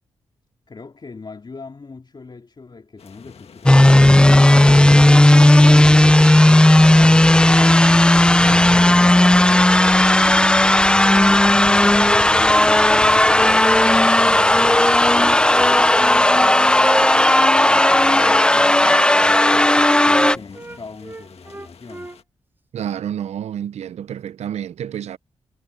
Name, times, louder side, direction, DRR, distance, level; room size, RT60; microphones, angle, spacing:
voice 1, 0.7-5.5 6.1-7.3 10.1-12.6 13.1-18.8 19.2-22.1, left 4 dB, 45° left, 3.2 m, -40 dB
sound 1, 3.0-22.2, left 7 dB, 65° left, 1.9 m, -44 dB
sound 2, 3.7-20.4, left 1 dB, 10° left, 0.4 m, -13 dB
Wind instrument woodwind instrument, 15.1-18.4 18.8-22.2, right 2 dB, 20° right, 1.9 m, -31 dB
voice 2, 22.7-25.2, right 9 dB, 75° right, 0.6 m, -29 dB
cardioid pair, 50°, 11 cm